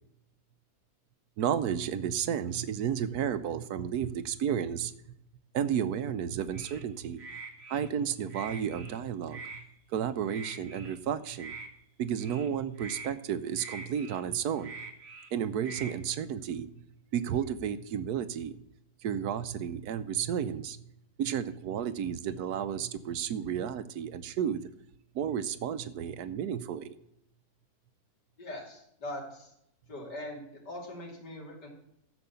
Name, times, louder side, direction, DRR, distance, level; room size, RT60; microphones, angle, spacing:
voice 1, 1.4-4.9 5.5-7.2 7.7-9.6 9.9-11.5 12.0-14.7 15.3-16.7 17.1-18.6 19.0-20.9 21.2-24.6 25.1-26.9, right 8 dB, 70° right, 12 dB, 1.2 m, -32 dB
sound 1, 6.5-6.8 7.2-7.9 8.3-9.0 9.3-9.6 10.3-11.0 11.3-11.7 12.2-12.5 12.8-13.1 13.6-14.2 14.6-15.3 15.6-15.9, right 4 dB, 40° right, 1.5 m, -44 dB
voice 2, 28.4-29.5 29.9-31.7, left 1 dB, 90° left, 0 dB, 3.4 m, -41 dB
12.5 x 7.1 x 6.9 m, 0.76 s
omnidirectional pair, 1.8 m